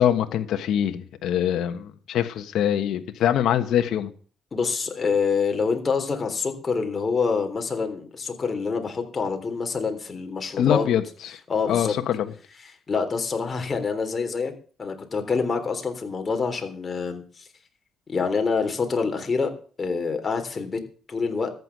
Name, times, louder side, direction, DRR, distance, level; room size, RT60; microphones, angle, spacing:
voice 1, 0.0-4.1 10.6-11.0 11.3-11.4 11.7-12.3, left 10 dB, 75° left, 1.3 m, -23 dB
voice 2, 4.5-10.8 11.5-11.9 12.6-14.5 14.8-17.5 18.1-19.5 19.8-20.8 21.1-21.5, left 5 dB, 35° left, 3.6 m, -26 dB
14.0 x 9.4 x 6.1 m
cardioid pair, 90°, 0 cm